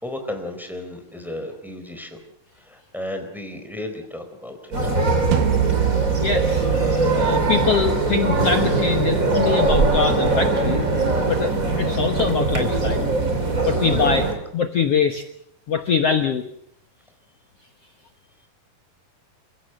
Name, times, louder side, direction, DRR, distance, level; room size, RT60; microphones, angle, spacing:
voice 1, 0.0-2.2 2.6-4.9, left 1 dB, ahead, 5 dB, 3.4 m, -34 dB
sound 1, 4.7-14.3, right 3 dB, 20° right, 3.1 m, -21 dB
sound 2, 5.3-10.4, right 13 dB, 70° right, 2.6 m, -28 dB
voice 2, 6.2-6.6 7.1-10.8 11.3-13.1 13.6-15.2 15.7-16.5, left 6 dB, 75° left, 6 dB, 1.4 m, -23 dB
30.0 x 16.0 x 7.8 m, 0.72 s
omnidirectional pair, 4.7 m